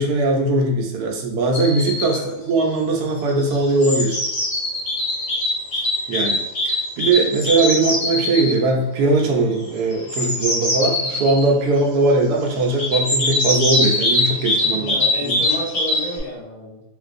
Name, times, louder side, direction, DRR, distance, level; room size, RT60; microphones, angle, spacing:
voice 1, 0.0-2.2 2.5-4.2 6.1-15.0 15.2-15.4, right 2 dB, 75° right, 2 dB, 1.1 m, -20 dB
sound 1, 1.5-2.2 3.3-8.5 9.9-11.4 12.8-16.2, left 1 dB, 85° left, 2.1 m, -22 dB
voice 2, 2.0-2.4 14.7-16.8, left 1 dB, 45° left, -8 dB, 0.5 m, -31 dB
3.7 x 2.5 x 2.5 m, 0.87 s
omnidirectional pair, 1.7 m